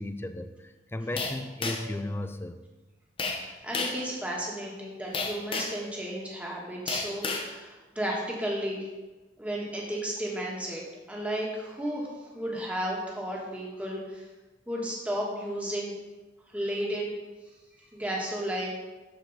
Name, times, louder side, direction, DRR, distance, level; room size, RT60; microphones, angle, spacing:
voice 1, 0.0-2.6, left 1 dB, 15° left, 8 dB, 0.4 m, -35 dB
sound 1, 1.2-2.0 3.2-3.4 3.7-4.0 5.1-5.8 6.9-7.5, left 3 dB, 30° left, 0.9 m, -31 dB
voice 2, 3.3-8.9 9.4-10.8 11.1-14.3 14.7-15.9 16.5-17.1 17.9-18.7, right 1 dB, 10° right, -3 dB, 1.6 m, -33 dB
13.0 x 4.6 x 4.1 m, 1.2 s
head